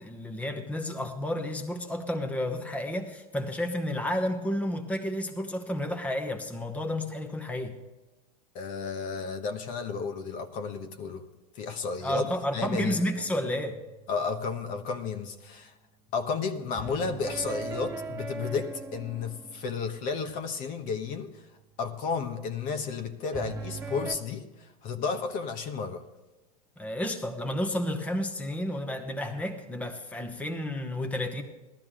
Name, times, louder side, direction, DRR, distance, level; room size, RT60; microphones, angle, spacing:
voice 1, 0.0-7.7 12.0-13.8 26.8-31.4, left 1 dB, 5° left, 5 dB, 1.0 m, -31 dB
voice 2, 8.5-11.2 11.5-13.0 14.1-15.7 16.1-21.4 21.8-26.0, left 5 dB, 45° left, 7 dB, 1.1 m, -32 dB
sound 1, 12.6-14.9 16.7-20.6 23.3-24.1, right 4 dB, 15° right, 2.0 m, -40 dB
15.0 x 12.5 x 3.7 m, 1.1 s
hypercardioid pair, 120°, 19 cm